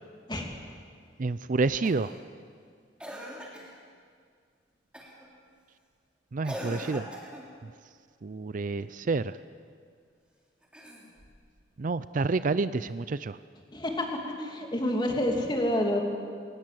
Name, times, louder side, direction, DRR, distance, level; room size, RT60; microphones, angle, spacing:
voice 1, 1.2-2.1 6.3-7.1 8.2-9.2 11.8-13.3, right 3 dB, 45° right, 15 dB, 0.5 m, -28 dB
Cough, 1.8-2.2 3.0-3.8 4.9-5.3 6.4-7.5 10.6-11.4 12.9-13.0, equal, 5° right, 3.3 m, -41 dB
voice 2, 13.7-16.0, left 1 dB, 25° left, 2 dB, 2.8 m, -28 dB
21.0 x 19.5 x 7.7 m, 2.1 s
head